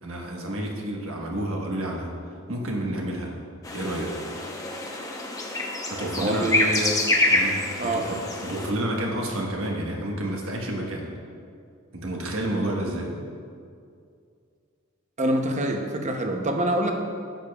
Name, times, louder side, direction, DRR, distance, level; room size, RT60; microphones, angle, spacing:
voice 1, 0.0-2.1 2.5-3.3 3.7-4.1 5.9-6.6 7.3-11.1 11.9-13.2, right 1 dB, 70° right, -1 dB, 1.4 m, -30 dB
sound 1, 3.6-8.7, left 2 dB, 15° left, 0.8 m, -26 dB
voice 2, 6.0-7.0 7.8-8.1 15.2-16.9, right 1 dB, 35° right, 3 dB, 0.8 m, -26 dB
11.5 x 8.6 x 2.4 m, 2.3 s
head